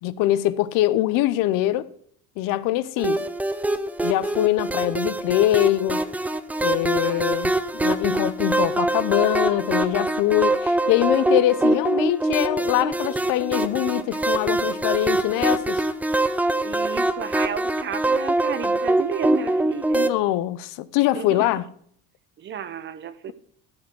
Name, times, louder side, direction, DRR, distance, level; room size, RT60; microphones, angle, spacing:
voice 1, 0.0-1.9 2.4-3.2 4.0-6.0 6.6-15.8 19.9-21.7, left 14 dB, 65° left, 0.7 m, -23 dB
sound 1, 3.0-20.1, right 2 dB, 5° right, 0.3 m, -24 dB
voice 2, 16.6-20.1 21.1-21.6 22.4-23.3, right 8 dB, 35° right, 0.7 m, -33 dB
14.5 x 5.2 x 5.9 m
cardioid pair, 140°, 35 cm